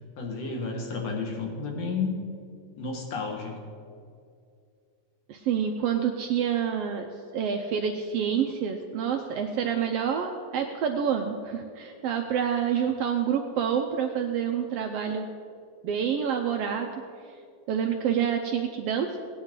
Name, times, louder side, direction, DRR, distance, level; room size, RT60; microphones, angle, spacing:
voice 1, 0.2-2.2 2.8-3.6, left 4 dB, 60° left, 1 dB, 2.6 m, -31 dB
voice 2, 5.3-7.1 7.3-15.3 15.8-16.9 17.7-19.2, right 8 dB, 85° right, 4 dB, 1.4 m, -27 dB
18.0 x 9.6 x 3.7 m, 2.3 s
omnidirectional pair, 3.5 m